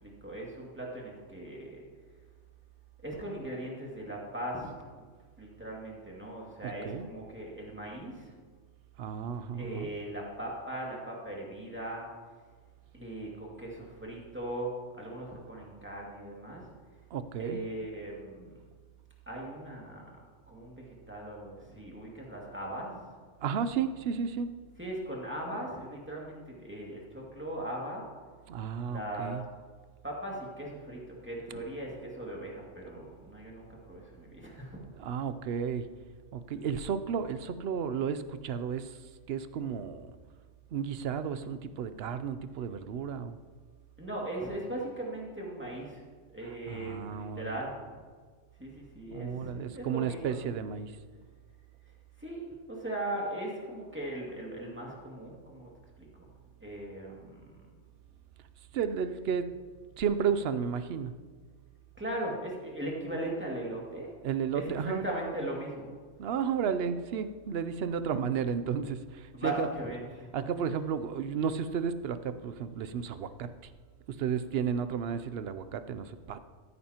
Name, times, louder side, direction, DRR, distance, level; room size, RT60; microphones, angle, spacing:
voice 1, 0.0-1.9 3.0-4.7 5.4-8.3 9.5-12.1 12.9-16.7 17.4-18.5 19.3-20.2 20.5-23.0 24.8-28.0 28.9-29.4 30.0-34.8 44.0-46.0 46.3-47.7 48.6-50.4 52.2-55.7 56.0-56.3 56.6-57.5 62.0-64.1 64.5-65.9 69.3-70.3, right 1 dB, 10° right, -3 dB, 2.2 m, -39 dB
voice 2, 6.6-7.1 9.0-9.9 17.1-17.6 23.4-24.5 28.5-29.4 31.5-31.6 35.0-35.9 36.3-39.0 39.3-40.1 40.7-43.4 46.4-47.5 49.1-51.0 58.7-59.5 60.0-61.1 64.2-65.1 66.2-69.7 70.3-73.7 74.1-76.4, right 7 dB, 60° right, 12 dB, 0.8 m, -33 dB
15.0 x 9.6 x 2.9 m, 1.5 s
omnidirectional pair, 1.2 m